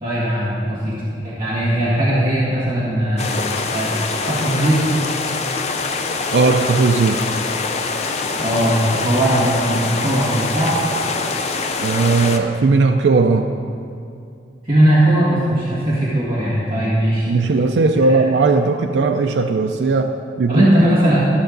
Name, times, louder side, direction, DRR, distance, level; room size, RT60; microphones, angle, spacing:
voice 1, 0.0-0.9 1.2-3.3 3.7-5.0 8.4-10.7 14.6-17.3 18.1-18.2 20.5-21.2, right 1 dB, 30° right, -10 dB, 1.8 m, -18 dB
sound 1, 3.2-12.4, left 4 dB, 35° left, 0.5 m, -24 dB
voice 2, 6.3-7.2 11.8-13.5 17.3-20.7, right 4 dB, 75° right, 4 dB, 0.4 m, -17 dB
14.0 x 6.6 x 3.9 m, 2.4 s
head